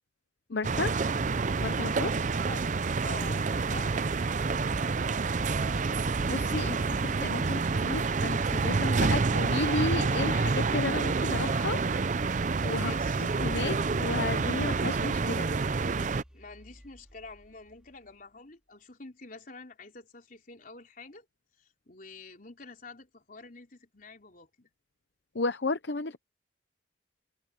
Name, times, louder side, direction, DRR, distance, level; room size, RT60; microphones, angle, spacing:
voice 1, 0.5-0.9 1.6-2.2 5.6-5.8 6.3-11.8 12.6-12.9 13.4-15.5 25.3-26.2, left 3 dB, 65° left, 0.8 m, -33 dB
sound 1, 0.6-16.2, right 4 dB, 40° right, 0.5 m, -28 dB
voice 2, 3.0-4.7 12.8-13.3 16.3-21.3 21.6-24.7, left 3 dB, 45° left, 4.0 m, -48 dB
sound 2, 18.2-18.8, equal, 5° right, 4.1 m, -61 dB
head